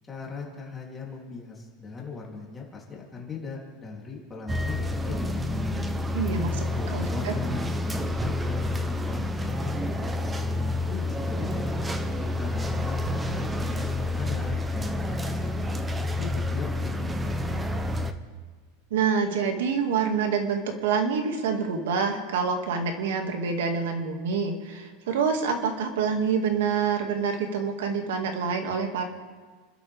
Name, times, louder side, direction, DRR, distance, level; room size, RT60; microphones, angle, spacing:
voice 1, 0.0-5.9 6.7-11.7 12.4-15.9 16.2-17.7, left 4 dB, 15° left, -3 dB, 3.2 m, -39 dB
sound 1, 4.5-18.1, left 1 dB, 10° right, 0.8 m, -29 dB
voice 2, 6.1-6.6 6.9-7.3 18.9-29.0, right 5 dB, 85° right, 4 dB, 2.2 m, -27 dB
29.5 x 12.5 x 3.6 m, 1.5 s
supercardioid pair, 160°, 0 cm